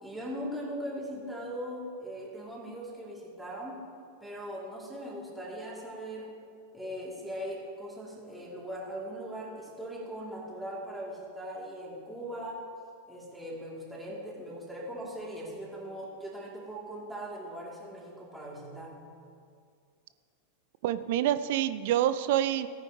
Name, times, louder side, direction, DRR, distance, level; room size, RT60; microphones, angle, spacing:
voice 1, 0.0-3.8 4.2-6.3 6.7-12.7 13.1-19.0, equal, 5° right, -5 dB, 2.8 m, -40 dB
voice 2, 20.8-22.7, right 12 dB, 50° right, 12 dB, 0.4 m, -27 dB
17.5 x 9.6 x 3.1 m, 2.2 s
figure-of-eight pair, 90°, 0 cm